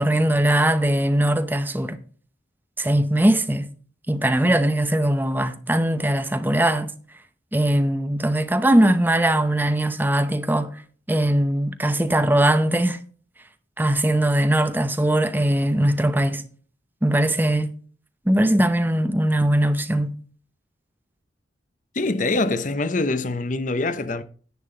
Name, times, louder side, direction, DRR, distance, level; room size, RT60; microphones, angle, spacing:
voice 1, 0.0-2.0 2.8-3.7 4.1-6.9 7.5-10.7 11.1-13.0 13.8-16.4 17.0-17.7 18.3-20.1, right 1 dB, 10° right, 0.7 m, -20 dB
voice 2, 21.9-24.2, left 2 dB, 45° left, 0.7 m, -24 dB
10.5 x 8.5 x 3.9 m
head